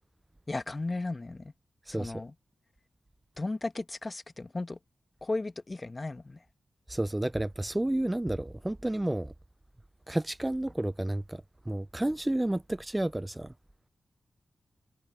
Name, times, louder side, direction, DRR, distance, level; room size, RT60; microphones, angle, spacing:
voice 1, 0.5-1.5 1.9-2.3 3.4-4.8 5.2-6.4, left 2 dB, 35° left, 1.2 m, -35 dB
voice 2, 6.9-9.3 10.1-13.5, right 1 dB, 15° right, 0.4 m, -31 dB
cardioid pair, 45°, 0 cm